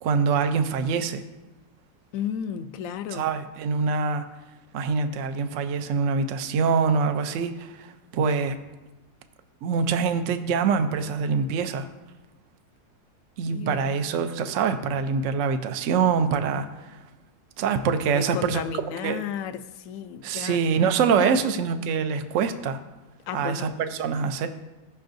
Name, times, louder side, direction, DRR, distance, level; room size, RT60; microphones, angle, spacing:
voice 1, 0.0-1.2 3.1-4.2 4.7-8.6 9.6-11.9 13.4-17.0 17.6-18.6 19.0-19.2 20.2-22.8 23.3-24.5, right 5 dB, 65° right, 0.9 m, -25 dB
voice 2, 2.1-3.3 13.5-14.0 18.1-21.4 23.3-23.7, left 9 dB, 70° left, 0.9 m, -33 dB
17.0 x 6.0 x 2.6 m
omnidirectional pair, 1.7 m